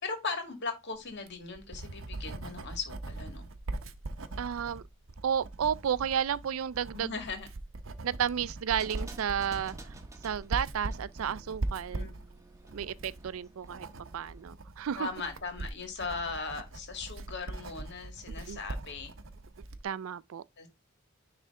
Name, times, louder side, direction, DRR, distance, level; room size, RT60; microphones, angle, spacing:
voice 1, 0.0-3.5 6.9-7.5 11.9-12.1 15.0-19.1 20.6-20.7, left 4 dB, 60° left, 1.9 m, -38 dB
Writing, 1.1-19.9, right 2 dB, 70° right, 0.8 m, -41 dB
voice 2, 4.4-4.8 5.2-7.1 8.0-9.9 10.2-12.1 12.7-13.9 14.1-15.1 18.5-18.6 19.8-20.4, right 8 dB, 90° right, 0.4 m, -32 dB
sound 1, 8.8-14.5, right 2 dB, 15° right, 1.1 m, -53 dB
10.0 x 3.3 x 3.6 m
head